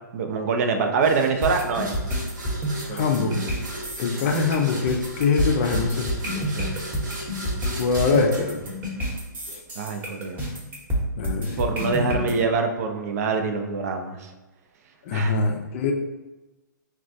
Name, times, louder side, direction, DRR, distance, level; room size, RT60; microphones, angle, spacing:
voice 1, 0.1-1.9 2.9-3.2 4.3-4.5 6.3-6.7 9.8-10.5 11.6-14.3 15.1-15.4, right 4 dB, 50° right, 5 dB, 0.4 m, -25 dB
sound 1, 1.0-9.5, right 1 dB, 75° right, 1.0 m, -37 dB
sound 2, 1.4-12.3, equal, 15° right, 0.9 m, -29 dB
voice 2, 2.9-3.4 4.0-6.1 7.8-8.6 9.5-9.6 11.2-11.6 12.0-12.4 15.1-15.9, left 4 dB, 40° left, 3 dB, 0.5 m, -23 dB
3.9 x 2.3 x 2.6 m, 1.1 s
hypercardioid pair, 135°, 11 cm